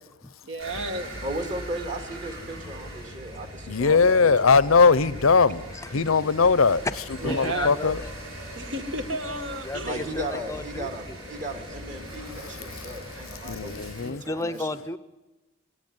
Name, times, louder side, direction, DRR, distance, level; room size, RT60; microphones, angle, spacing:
voice 1, 0.4-1.1 7.2-7.8 8.5-10.1 12.5-12.6, right 2 dB, 65° right, 1.9 m, -32 dB
sound 1, 0.6-14.1, equal, 85° right, 4.6 m, -40 dB
voice 2, 1.2-4.5 9.8-14.7, right 1 dB, 35° right, 2.1 m, -36 dB
voice 3, 3.7-6.8 7.4-8.0 12.7-12.9 13.4-14.2, left 4 dB, 80° left, 0.7 m, -20 dB
voice 4, 6.8-8.1 9.6-11.2 13.8-15.0, left 2 dB, 15° left, 0.7 m, -33 dB
18.5 x 18.0 x 9.5 m
head